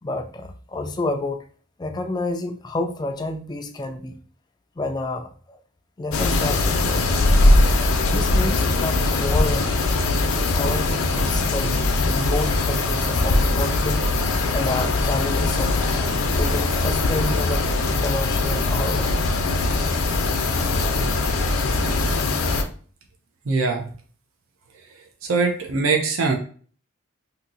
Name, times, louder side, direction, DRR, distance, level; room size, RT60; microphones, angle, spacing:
voice 1, 0.0-1.4 1.8-4.2 4.8-5.6 6.0-7.1 8.0-9.7 10.5-14.1 14.5-15.8 16.3-19.1, left 2 dB, 20° left, 0.3 m, -29 dB
sound 1, 6.1-22.6, left 2 dB, 85° left, 0.5 m, -21 dB
voice 2, 23.5-23.8 25.2-26.3, right 4 dB, 75° right, 0.6 m, -21 dB
2.7 x 2.7 x 3.8 m
head